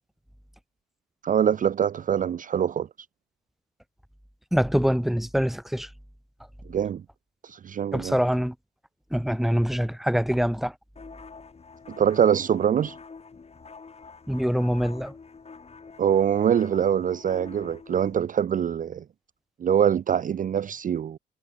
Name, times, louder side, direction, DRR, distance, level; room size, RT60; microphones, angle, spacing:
voice 1, 1.2-2.9 6.7-7.0 7.4-8.2 12.0-13.0 16.0-19.0 19.6-21.2, right 9 dB, 40° right, 0.6 m, -24 dB
voice 2, 4.5-5.9 7.9-8.5 9.1-10.7 14.3-15.1, equal, ahead, 2.0 m, -24 dB
sound 1, 11.0-18.2, left 4 dB, 30° left, 4.8 m, -46 dB
cardioid pair, 90°, 20 cm